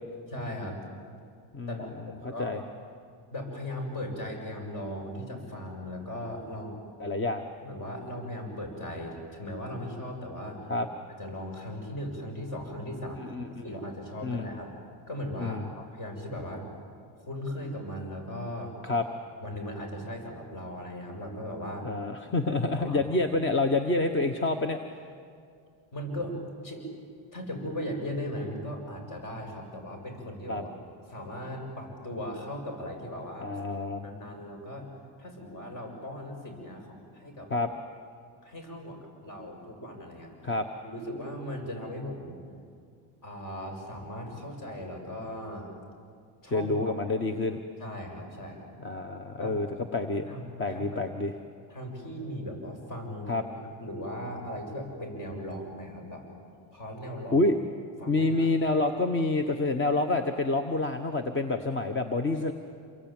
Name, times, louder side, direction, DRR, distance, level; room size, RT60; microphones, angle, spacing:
voice 1, 0.3-0.8 1.7-2.7 3.3-6.8 7.6-10.6 11.2-13.2 13.6-14.7 15.1-16.7 17.3-18.7 19.4-21.9 22.7-23.0 25.9-26.4 26.6-26.9 27.3-30.7 31.1-33.5 34.0-34.9 35.2-37.5 38.4-40.3 40.8-42.4 43.2-45.7 46.4-46.9 47.8-48.7 49.4-49.6 50.3-51.0 51.7-53.3 53.8-56.3 56.7-57.4 58.0-58.5, equal, 50° left, 3 dB, 7.5 m, -38 dB
voice 2, 2.2-2.6 7.0-7.4 10.7-10.9 13.2-13.6 14.2-14.5 15.4-15.7 18.8-19.0 21.8-24.8 30.5-30.6 33.4-34.0 37.5-37.7 40.4-40.7 46.5-47.6 48.8-49.7 49.9-50.3 50.6-51.3 53.3-53.4 57.3-57.6 58.1-62.5, left 2 dB, 25° left, 7 dB, 1.2 m, -27 dB
28.0 x 23.0 x 9.0 m, 2.3 s
cardioid pair, 135°, 43 cm